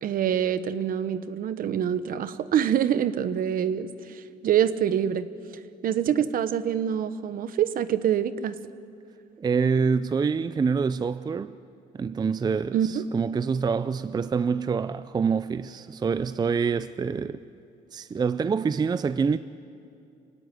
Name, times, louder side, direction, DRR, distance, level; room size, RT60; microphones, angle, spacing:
voice 1, 0.0-5.3 5.8-8.6 12.7-13.0, right 9 dB, 55° right, 1.1 m, -25 dB
voice 2, 9.4-11.6 11.9-17.4 17.9-19.4, right 5 dB, 25° right, 0.5 m, -26 dB
27.0 x 17.0 x 9.8 m
cardioid pair, 110°, 17 cm